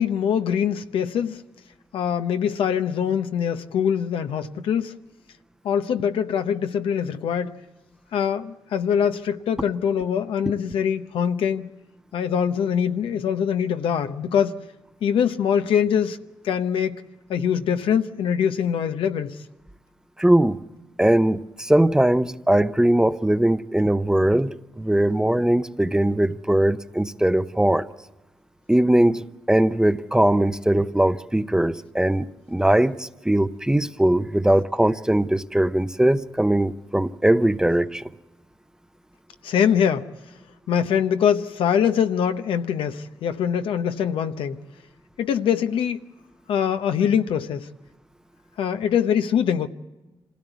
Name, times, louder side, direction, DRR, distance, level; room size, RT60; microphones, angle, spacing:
voice 1, 0.0-1.4 1.9-4.9 5.6-7.6 8.1-11.7 12.1-14.6 15.0-17.0 17.3-19.4 39.4-40.1 40.7-44.6 45.2-46.0 46.5-47.7 48.6-49.7, left 8 dB, 85° left, 0.9 m, -23 dB
voice 2, 20.2-20.6 21.0-27.9 28.7-38.1, right 1 dB, 5° right, 0.7 m, -20 dB
26.0 x 16.0 x 8.1 m
cardioid pair, 80°, 9 cm